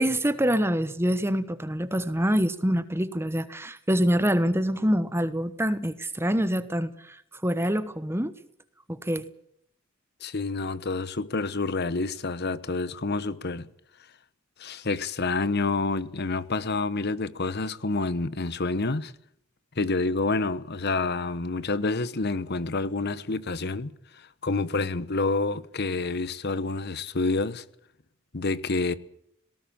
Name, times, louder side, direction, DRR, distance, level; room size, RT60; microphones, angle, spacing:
voice 1, 0.0-8.3 8.9-9.2, equal, 10° right, 1.2 m, -25 dB
voice 2, 10.2-13.7 14.6-19.1 19.8-27.6 28.3-28.9, left 3 dB, 50° left, 1.1 m, -28 dB
18.5 x 18.5 x 8.7 m
head